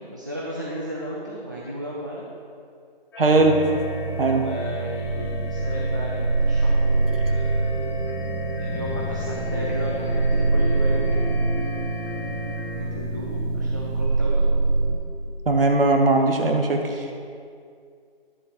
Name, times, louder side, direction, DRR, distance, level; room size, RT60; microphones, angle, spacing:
voice 1, 0.0-2.3 3.2-3.6 4.1-8.1 8.5-11.7 12.7-14.4, right 1 dB, 20° right, -5 dB, 0.5 m, -35 dB
sound 1, 3.1-12.8, left 4 dB, 25° left, 1.0 m, -38 dB
voice 2, 3.2-3.5 4.2-4.4 15.4-17.2, right 2 dB, 65° right, 3 dB, 1.5 m, -19 dB
sound 2, 3.4-14.1, right 4 dB, 85° right, 2.0 m, -33 dB
sound 3, 5.0-14.9, right 2 dB, ahead, 2.0 m, -24 dB
10.5 x 7.4 x 4.3 m, 2.3 s
hypercardioid pair, 165°, 30 cm